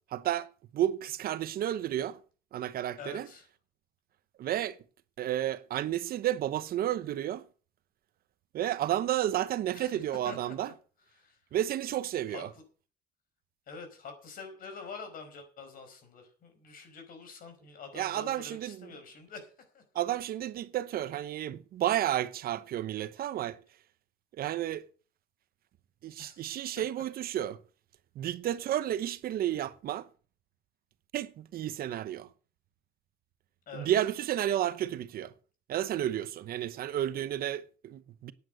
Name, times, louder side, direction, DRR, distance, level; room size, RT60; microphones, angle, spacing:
voice 1, 0.1-2.2 2.5-3.3 4.4-4.8 5.2-7.4 8.5-10.7 11.5-12.5 17.9-18.9 19.9-23.6 24.4-24.9 26.0-27.6 28.2-30.1 31.1-32.3 33.7-35.3 35.7-38.3, right 12 dB, 60° right, 0.9 m, -31 dB
voice 2, 3.0-3.5 9.7-10.0 10.2-10.7 11.1-11.4 12.3-12.6 13.7-19.8 26.2-26.5 26.8-27.0 33.7-33.9, left 4 dB, 55° left, 5.1 m, -46 dB
10.0 x 9.2 x 7.9 m
cardioid pair, 110°, 17 cm